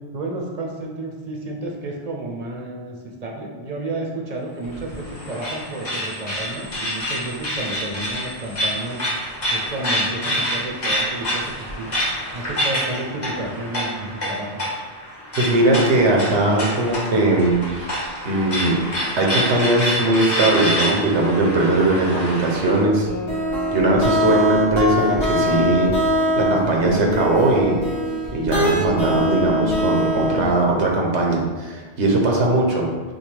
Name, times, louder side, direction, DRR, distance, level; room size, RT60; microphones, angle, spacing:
voice 1, 0.1-9.0 9.5-11.9 12.3-14.6, right 2 dB, 45° right, 0 dB, 0.6 m, -31 dB
sound 1, 4.6-22.8, equal, 40° left, 1.3 m, -27 dB
voice 2, 15.4-17.9 18.2-18.8 19.2-23.1 23.7-27.8 28.3-32.9, right 2 dB, 85° right, -1 dB, 1.2 m, -19 dB
sound 2, 23.1-30.7, equal, 85° left, 1.4 m, -23 dB
6.2 x 2.3 x 3.3 m, 1.4 s
omnidirectional pair, 1.1 m